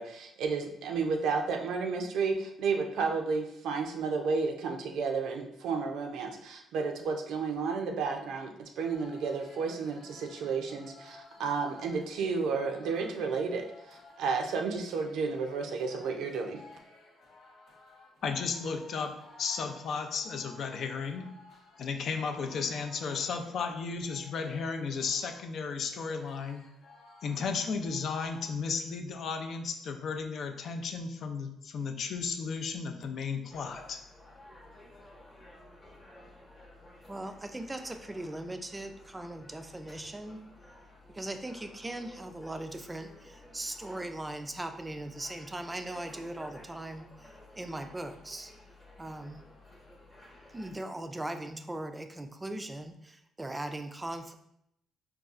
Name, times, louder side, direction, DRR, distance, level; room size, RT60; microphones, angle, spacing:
voice 1, 0.0-16.6, right 5 dB, 80° right, 3 dB, 0.4 m, -32 dB
sound 1, 8.8-28.6, left 2 dB, 90° left, 1.0 m, -56 dB
voice 2, 18.2-21.4 21.8-26.7 27.2-34.0, left 5 dB, 65° left, 5 dB, 0.4 m, -34 dB
sound 2, 33.5-50.7, left 1 dB, 25° left, 0.9 m, -54 dB
voice 3, 37.1-40.4 41.1-48.5 49.0-49.4 50.5-54.3, right 1 dB, 15° right, 7 dB, 0.3 m, -39 dB
4.0 x 2.3 x 2.4 m, 0.77 s
cardioid pair, 90°, 0 cm